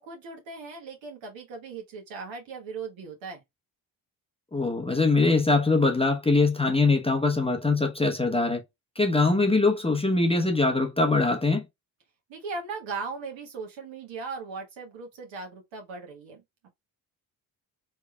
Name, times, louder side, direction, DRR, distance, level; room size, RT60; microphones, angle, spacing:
voice 1, 0.0-3.4 12.3-16.7, right 4 dB, 70° right, 1.4 m, -38 dB
voice 2, 4.5-8.6 9.0-11.6, left 3 dB, 10° left, 0.8 m, -22 dB
3.4 x 3.3 x 2.2 m
hypercardioid pair, 50°, 47 cm